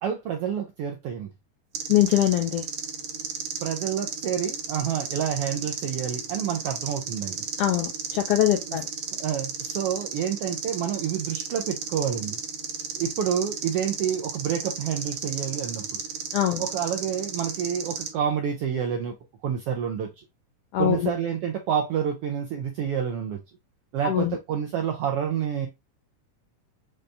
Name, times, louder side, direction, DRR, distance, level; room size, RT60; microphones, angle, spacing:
voice 1, 0.0-1.3 3.6-7.4 8.7-8.8 9.2-12.4 13.0-16.0 16.6-19.1 19.4-20.2 20.8-23.4 23.9-25.7, right 8 dB, 80° right, 1.3 m, -28 dB
sound 1, 1.7-18.1, right 6 dB, 65° right, 1.7 m, -34 dB
voice 2, 1.9-2.6 7.6-8.8 16.3-16.6 20.7-21.1 24.0-24.4, left 12 dB, 80° left, 1.3 m, -23 dB
5.6 x 3.3 x 2.5 m
omnidirectional pair, 3.4 m